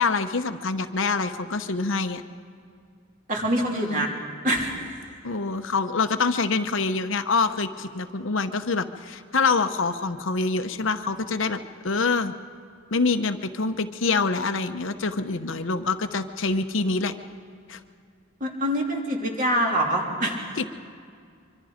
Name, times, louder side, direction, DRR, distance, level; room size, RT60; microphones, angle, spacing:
voice 1, 0.0-2.2 3.8-4.1 5.2-12.3 12.9-17.1 17.7-17.8 20.6-20.7, left 4 dB, 65° left, 8 dB, 0.9 m, -25 dB
voice 2, 3.3-4.1 4.4-4.9 18.4-20.5, right 1 dB, 40° right, -1 dB, 3.4 m, -25 dB
25.0 x 24.0 x 5.1 m, 2.3 s
head